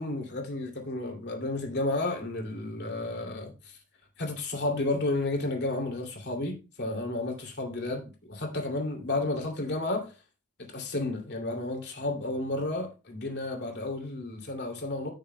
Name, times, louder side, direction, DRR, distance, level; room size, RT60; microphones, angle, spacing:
voice 1, 0.0-3.8 4.2-10.1 10.6-15.1, left 2 dB, 50° left, 2.6 m, -32 dB
15.0 x 6.6 x 2.2 m
head